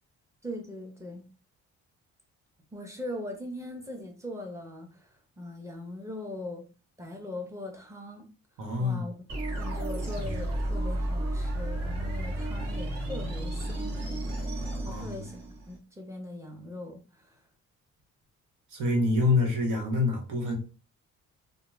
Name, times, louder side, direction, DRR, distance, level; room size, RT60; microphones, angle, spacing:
voice 1, 0.4-1.2 2.7-6.6 7.0-8.3 8.8-9.1 9.5-15.4 15.7-17.4, left 1 dB, 10° right, 0.7 m, -40 dB
voice 2, 8.6-9.1 14.8-15.2 18.7-20.6, left 3 dB, 85° right, 1.0 m, -26 dB
sound 1, 9.3-15.8, right 1 dB, 55° right, 1.1 m, -32 dB
2.3 x 2.2 x 3.1 m
cardioid pair, 90°, 30 cm